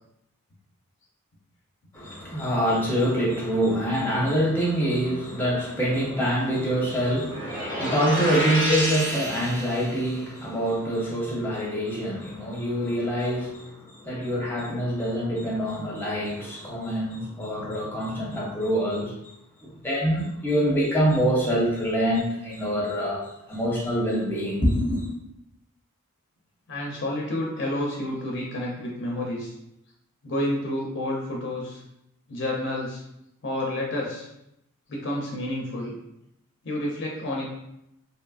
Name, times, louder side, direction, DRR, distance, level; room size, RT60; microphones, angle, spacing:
voice 1, 1.9-19.1 19.6-25.1, equal, 10° left, -5 dB, 0.6 m, -25 dB
sound 1, 7.3-10.1, right 1 dB, 40° right, 1.1 m, -29 dB
voice 2, 26.7-29.5 30.2-31.8 32.3-33.0 33.4-34.3 34.9-35.9 36.6-37.5, left 1 dB, 55° left, -2 dB, 0.4 m, -29 dB
2.7 x 2.4 x 2.3 m, 0.83 s
head